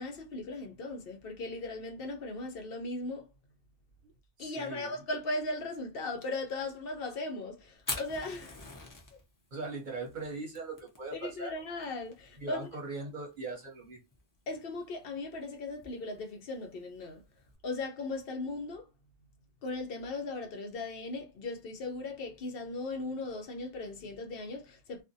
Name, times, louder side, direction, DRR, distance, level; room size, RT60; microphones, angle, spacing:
voice 1, 0.0-3.3 4.4-8.6 11.1-12.6 14.5-17.2 17.6-18.9 19.6-25.0, left 2 dB, 60° left, 0.7 m, -38 dB
voice 2, 4.4-4.9 9.5-11.5 12.4-14.0, right 2 dB, 50° right, 0.7 m, -40 dB
Fire, 7.8-17.6, left 2 dB, 30° left, 0.4 m, -46 dB
2.5 x 2.1 x 2.6 m
omnidirectional pair, 1.2 m